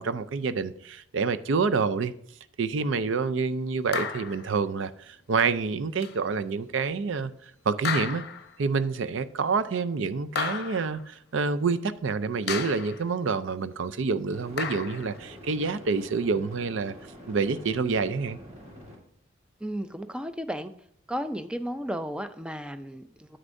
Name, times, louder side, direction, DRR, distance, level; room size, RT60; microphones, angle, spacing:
voice 1, 0.0-2.1 2.6-7.3 7.7-8.2 8.6-16.9 17.3-18.4, right 4 dB, 70° right, 0.5 m, -27 dB
sound 1, 3.9-4.5 6.0-6.2 7.8-8.6 10.3-11.0 12.5-13.0 14.6-15.1, left 6 dB, 50° left, 0.7 m, -32 dB
sound 2, 9.4-9.6 14.3-19.0, equal, 30° right, 1.7 m, -46 dB
voice 2, 19.6-20.7 21.1-23.4, equal, 5° right, 0.4 m, -34 dB
9.7 x 7.9 x 2.6 m
head